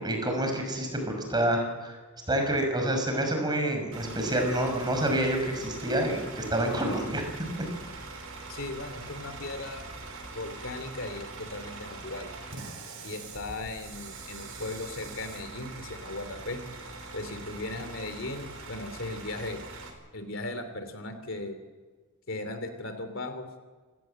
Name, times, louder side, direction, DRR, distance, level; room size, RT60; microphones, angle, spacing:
voice 1, 0.0-2.0 2.3-7.3, right 1 dB, 20° right, 4 dB, 5.8 m, -28 dB
Bus / Idling, 3.9-19.9, right 3 dB, 90° right, 5.6 m, -43 dB
voice 2, 8.5-9.8 10.3-12.3 13.0-16.6 17.1-19.6 20.1-21.6 22.3-23.5, left 2 dB, 65° left, 9 dB, 3.1 m, -37 dB
28.5 x 17.5 x 7.8 m, 1.4 s
head